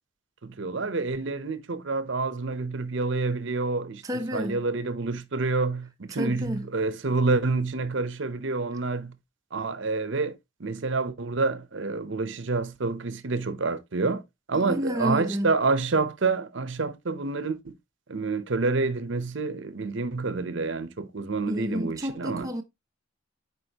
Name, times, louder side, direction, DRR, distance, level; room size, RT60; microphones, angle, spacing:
voice 1, 0.4-9.1 9.5-10.3 10.6-14.2 14.5-17.7 18.1-22.5, right 3 dB, 60° right, 0.8 m, -28 dB
voice 2, 4.0-4.7 6.1-6.7 14.5-15.6 21.5-22.6, equal, 15° right, 0.6 m, -30 dB
8.0 x 4.7 x 2.9 m
head